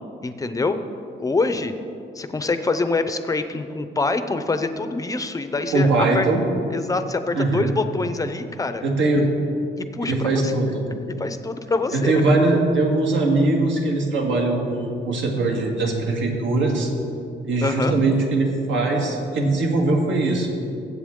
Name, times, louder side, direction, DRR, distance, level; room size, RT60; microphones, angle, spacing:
voice 1, 0.2-0.8 1.2-1.7 2.1-6.3 6.7-8.8 9.8-10.5 11.2-12.1 17.6-17.9, left 3 dB, 15° left, 9 dB, 0.5 m, -25 dB
voice 2, 5.7-6.4 7.3-7.7 8.8-9.3 10.1-10.8 11.9-16.9 17.4-20.5, right 2 dB, 80° right, 0 dB, 2.0 m, -21 dB
21.5 x 8.2 x 3.7 m, 2.5 s
wide cardioid pair, 170°, 19 cm